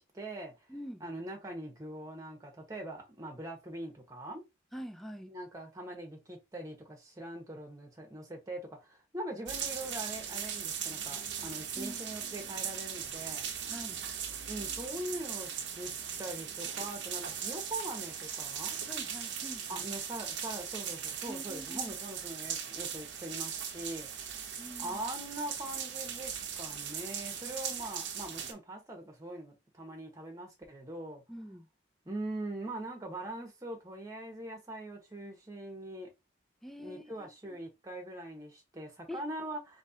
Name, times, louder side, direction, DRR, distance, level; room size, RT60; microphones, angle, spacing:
voice 1, 0.0-0.5 1.0-4.4 5.3-13.5 14.5-15.9 16.2-18.8 19.7-24.4 24.8-31.2 32.0-36.1 36.8-39.8, right 1 dB, 20° right, 1.1 m, -42 dB
voice 2, 0.7-1.0 4.7-5.3 11.7-12.0 13.7-14.1 18.9-19.8 21.2-22.0 24.6-25.0 31.3-31.7 36.6-37.6 39.1-39.2, equal, ahead, 0.4 m, -45 dB
sound 1, 9.5-28.5, right 8 dB, 65° right, 0.7 m, -39 dB
4.2 x 2.9 x 2.8 m
head